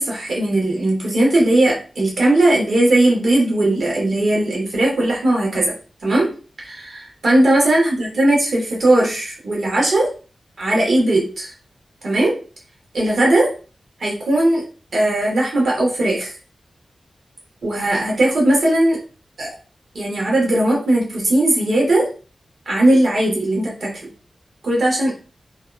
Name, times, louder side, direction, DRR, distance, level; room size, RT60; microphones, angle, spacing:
voice 1, 0.0-5.7 6.0-6.3 6.6-10.1 10.6-11.5 12.0-12.4 12.9-13.5 14.0-14.6 14.9-16.3 17.6-19.0 19.4-19.5 19.9-22.1 22.7-23.9 24.6-25.1, right 1 dB, 75° right, -3 dB, 1.1 m, -18 dB
2.6 x 2.2 x 2.4 m, 0.36 s
cardioid pair, 55°, 0 cm